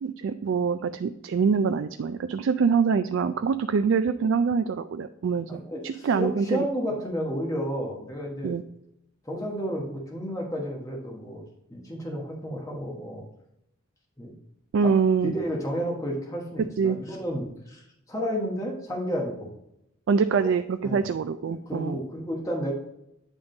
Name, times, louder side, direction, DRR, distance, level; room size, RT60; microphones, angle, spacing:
voice 1, 0.0-6.7 8.4-8.6 14.7-15.3 16.8-17.0 20.1-22.0, right 5 dB, 65° right, 9 dB, 0.3 m, -25 dB
voice 2, 5.5-8.5 9.3-11.4 11.7-13.3 14.2-14.3 14.8-14.9 15.2-17.8 18.1-19.5 20.4-20.5 20.8-21.0 21.7-22.7, equal, 15° left, -1 dB, 1.3 m, -31 dB
9.5 x 3.7 x 3.9 m, 0.79 s
head